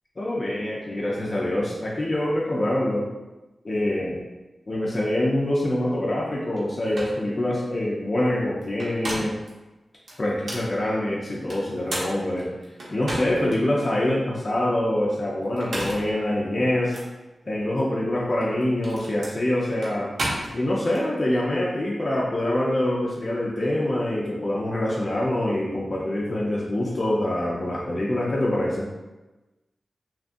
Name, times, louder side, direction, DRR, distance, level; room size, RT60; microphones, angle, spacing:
voice 1, 0.2-3.1 3.6-4.2 4.7-9.4 10.2-12.5 12.9-17.0 17.5-20.1 20.5-28.9, left 1 dB, 45° left, -5 dB, 0.5 m, -25 dB
sound 1, 6.6-6.7 6.9-7.2 8.6-9.5 10.1-10.7 11.5-13.6 14.1-14.2 15.4-16.1 16.9-17.1 18.3-21.0, right 1 dB, 85° right, 0.7 m, -33 dB
2.8 x 2.3 x 2.5 m, 1.1 s
wide cardioid pair, 85°, 0 cm